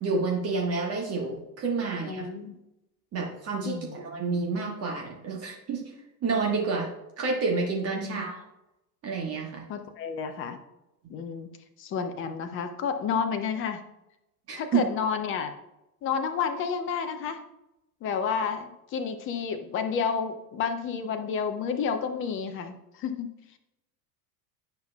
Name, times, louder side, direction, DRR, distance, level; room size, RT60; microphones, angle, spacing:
voice 1, 0.0-2.3 3.1-5.8 6.2-6.9 7.2-8.4 9.0-9.6 14.5-14.8, right 4 dB, 30° right, -1 dB, 1.4 m, -29 dB
voice 2, 2.0-2.6 3.6-4.2 8.0-8.3 9.7-10.6 11.1-11.5 11.8-13.8 14.6-15.5 16.0-17.4 18.0-23.3, left 6 dB, 25° left, 8 dB, 0.7 m, -30 dB
10.0 x 5.5 x 2.3 m, 0.91 s
figure-of-eight pair, 80°, 49 cm